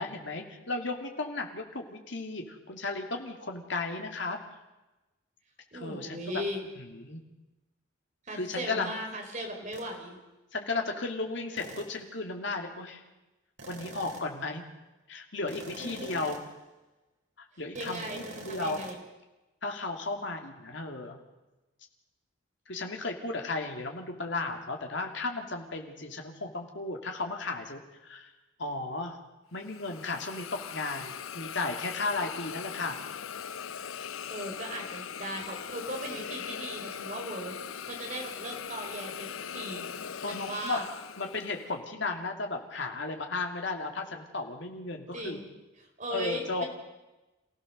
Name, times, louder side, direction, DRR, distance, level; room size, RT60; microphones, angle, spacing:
voice 1, 0.0-4.4 5.7-6.4 6.8-7.2 8.3-8.9 10.5-13.0 13.7-14.6 15.1-16.4 17.4-18.8 19.6-21.2 22.7-28.3 28.6-29.2 29.5-33.0 40.2-40.8 41.2-45.4 46.1-46.6, left 3 dB, 60° left, 3 dB, 2.8 m, -35 dB
voice 2, 5.7-6.6 8.3-10.2 15.8-16.1 17.7-19.0 34.3-37.5 37.8-39.9 40.3-40.8 45.1-45.5 46.0-46.7, right 1 dB, 35° right, 2 dB, 4.6 m, -38 dB
sound 1, 9.7-9.9 11.6-12.0 13.6-14.4 15.5-16.6 17.8-19.0, right 1 dB, 65° right, 3.8 m, -45 dB
Hiss, 29.6-41.7, left 8 dB, 80° left, 0.7 m, -40 dB
28.0 x 16.5 x 6.8 m, 1.1 s
head